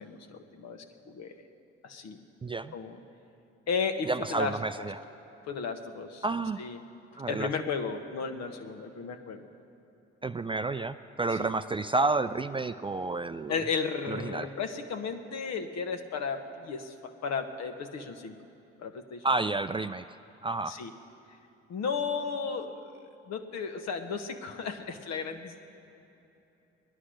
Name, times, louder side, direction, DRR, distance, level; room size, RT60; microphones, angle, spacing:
voice 1, 0.0-1.4 1.8-2.2 2.7-3.0 3.7-4.9 5.4-6.2 6.6-6.8 7.3-9.5 11.3-11.5 13.5-18.3 18.8-19.3 20.7-20.9 21.7-23.0 23.3-25.6, left 5 dB, 60° left, 7 dB, 1.3 m, -34 dB
voice 2, 2.4-2.7 4.1-5.0 6.2-6.6 7.2-7.5 10.2-13.5 14.1-14.5 19.2-20.1 20.4-20.8, right 3 dB, 15° right, 11 dB, 0.4 m, -30 dB
17.0 x 11.5 x 6.4 m, 3.0 s
hypercardioid pair, 45°, 31 cm